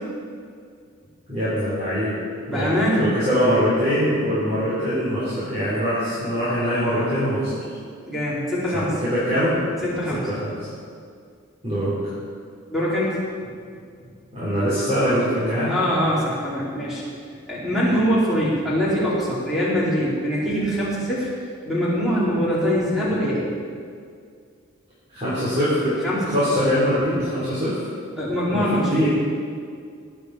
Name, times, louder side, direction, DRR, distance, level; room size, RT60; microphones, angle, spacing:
voice 1, 1.3-2.2 2.5-7.6 8.7-9.6 10.3-10.5 11.6-12.1 14.3-15.8 25.1-26.0 26.3-27.8 28.5-29.1, equal, 30° right, -11 dB, 4.2 m, -23 dB
voice 2, 2.5-3.1 8.1-8.9 9.8-10.2 12.7-13.1 15.7-17.0 17.5-21.3 21.6-23.4 26.0-26.3 28.2-29.0, equal, ahead, -9 dB, 4.4 m, -23 dB
21.0 x 8.9 x 5.0 m, 2.2 s
head